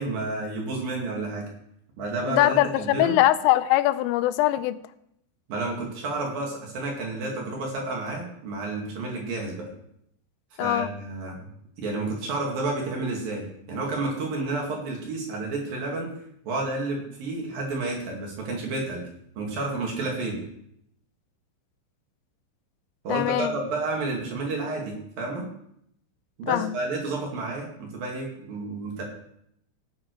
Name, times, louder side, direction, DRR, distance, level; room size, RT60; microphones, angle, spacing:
voice 1, 0.0-1.4 2.0-3.2 5.5-9.7 10.6-11.5 11.8-16.1 16.5-19.0 19.4-20.4 23.0-25.5 26.4-29.0, right 2 dB, 50° right, -1 dB, 3.5 m, -30 dB
voice 2, 2.3-4.8 10.6-10.9 23.1-23.5 26.5-26.8, left 15 dB, 85° left, 14 dB, 3.2 m, -22 dB
16.5 x 8.9 x 4.8 m, 0.74 s
omnidirectional pair, 5.8 m